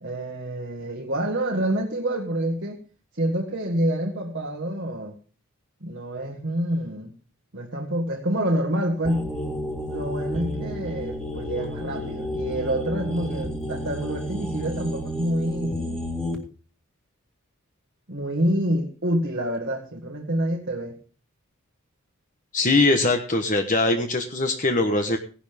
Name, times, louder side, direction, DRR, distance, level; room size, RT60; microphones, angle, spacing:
voice 1, 0.0-2.8 3.1-5.2 5.8-7.1 7.5-9.3 9.9-16.0 18.1-21.0, right 1 dB, 55° right, 0 dB, 1.6 m, -27 dB
sound 1, 9.0-16.3, equal, 5° left, 2.2 m, -31 dB
voice 2, 22.5-25.2, left 2 dB, 35° left, 4 dB, 1.2 m, -21 dB
17.0 x 11.5 x 3.6 m, 0.37 s
head